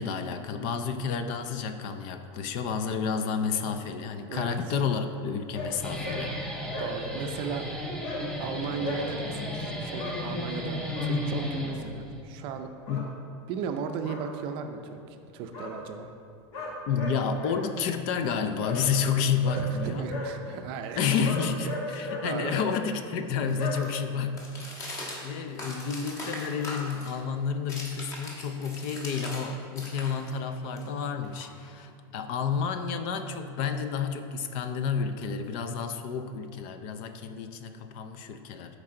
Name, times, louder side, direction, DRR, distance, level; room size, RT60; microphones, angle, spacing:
voice 1, 0.0-6.3 12.9-13.1 16.9-20.1 21.0-24.4 24.7-38.8, left 6 dB, 40° left, 8 dB, 0.5 m, -30 dB
voice 2, 4.1-4.6 6.8-7.7 8.4-12.7 13.5-16.1 19.5-21.0 21.9-22.6, right 6 dB, 35° right, 6 dB, 0.5 m, -36 dB
sound 1, 5.5-5.7 6.0-6.2 6.5-6.9 8.0-8.2 8.8-9.0 10.0-10.1 10.7-11.1 12.8-13.1 14.0-14.2 15.5-15.7 16.5-17.6 18.6-18.8 19.4-19.6 20.1-20.3 21.2-22.2 22.5-22.7 23.6-23.7, left 3 dB, 65° left, 1.9 m, -35 dB
Guitar, 5.6-12.2, left 1 dB, 5° left, 0.7 m, -34 dB
sound 2, 22.1-29.5 29.7-31.9, left 1 dB, 20° left, 1.3 m, -42 dB
13.0 x 4.7 x 3.8 m, 2.4 s
supercardioid pair, 170°, 14 cm